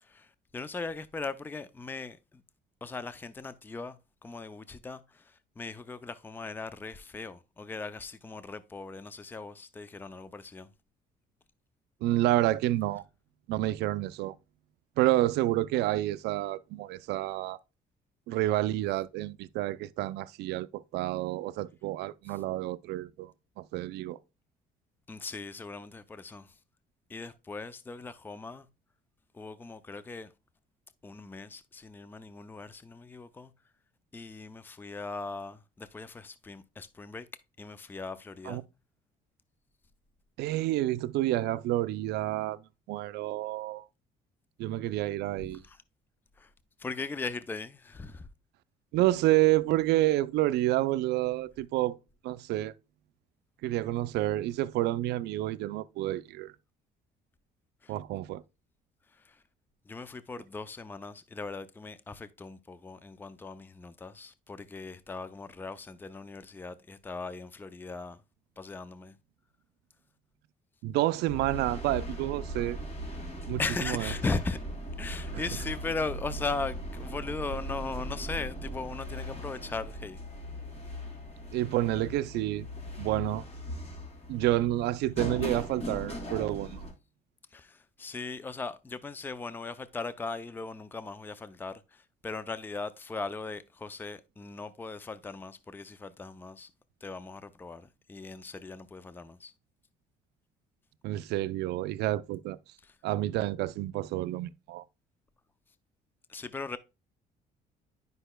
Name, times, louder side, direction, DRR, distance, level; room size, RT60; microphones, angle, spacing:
voice 1, 0.0-2.4 2.8-10.7 22.3-22.4 25.1-26.6 27.1-28.7 29.3-30.3 31.0-33.5 34.1-37.3 37.6-38.6 45.6-45.8 46.4-46.5 46.8-48.3 57.8-58.0 59.1-59.4 59.9-68.2 68.6-69.1 73.6-74.6 75.0-80.2 87.5-96.7 97.0-99.5 102.8-103.0 106.3-106.8, left 3 dB, 10° left, 0.4 m, -39 dB
voice 2, 12.0-13.0 13.5-14.4 15.0-17.6 18.3-23.3 23.6-24.2 38.5-38.6 40.4-42.6 42.9-43.9 44.6-45.6 48.9-52.0 52.2-52.7 53.6-56.5 57.9-58.4 70.8-72.8 73.5-73.6 73.9-74.1 75.3-75.4 81.5-82.7 83.0-83.4 84.3-86.8 101.0-102.6 103.0-104.8, right 15 dB, 80° right, 0.4 m, -29 dB
sound 1, 71.3-86.9, equal, 35° left, 2.5 m, -39 dB
10.0 x 5.3 x 2.2 m
cardioid pair, 110°, 17 cm